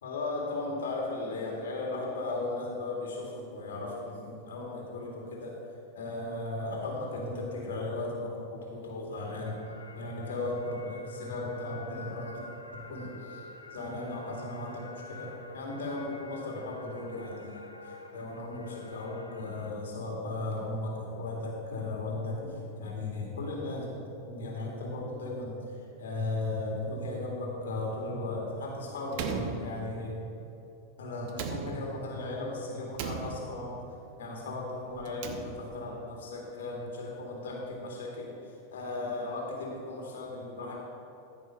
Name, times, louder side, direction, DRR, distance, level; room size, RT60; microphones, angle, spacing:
voice 1, 0.0-5.6 5.9-9.6 9.9-12.5 12.7-13.4 13.7-17.6 17.8-23.9 24.2-30.2 31.0-33.8 34.2-38.4 38.7-40.8, left 2 dB, 65° left, -2 dB, 2.1 m, -36 dB
sound 1, 9.3-19.7, left 2 dB, 80° left, 0.8 m, -47 dB
Slam, 29.1-30.3 31.3-32.2 32.9-33.8 35.0-35.9, right 5 dB, 45° right, 0.9 m, -38 dB
14.0 x 5.3 x 5.6 m, 2.8 s
figure-of-eight pair, 90°, 0 cm